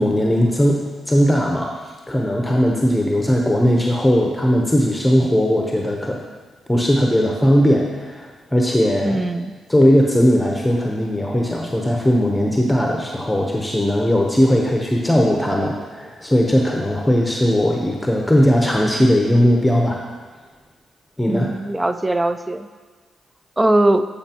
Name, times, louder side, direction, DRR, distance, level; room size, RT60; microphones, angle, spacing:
voice 1, 0.0-1.7 2.1-6.2 6.7-9.2 9.7-20.0 21.2-21.5, equal, 10° left, 0 dB, 0.8 m, -18 dB
voice 2, 9.0-9.5 21.3-22.7 23.6-24.1, right 1 dB, 20° right, 10 dB, 0.4 m, -20 dB
8.9 x 5.1 x 2.9 m, 1.5 s
supercardioid pair, 60°, 0 cm